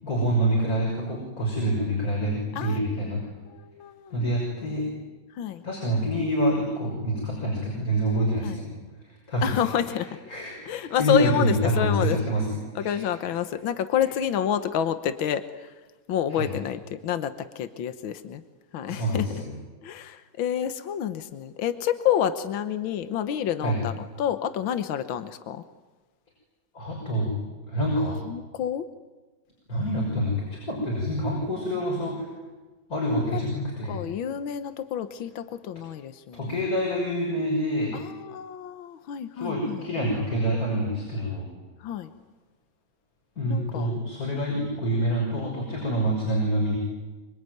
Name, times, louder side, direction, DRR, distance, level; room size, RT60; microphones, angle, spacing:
voice 1, 0.0-3.2 4.1-4.9 5.6-8.8 9.0-9.6 10.3-13.1 16.3-16.5 18.9-19.4 23.6-23.8 26.7-27.4 27.7-28.2 29.7-32.2 32.9-34.0 36.3-37.9 39.3-41.5 43.4-46.8, equal, 45° left, -2 dB, 6.8 m, -26 dB
voice 2, 3.5-4.3 5.3-5.6 8.4-8.6 9.4-10.2 10.7-12.2 12.8-15.8 16.1-18.4 18.7-19.3 19.8-25.6 28.3-28.9 33.1-36.5 37.9-39.9 41.8-42.1 43.5-43.9, left 9 dB, 75° left, 10 dB, 1.8 m, -29 dB
25.0 x 25.0 x 9.3 m, 1.2 s
omnidirectional pair, 2.2 m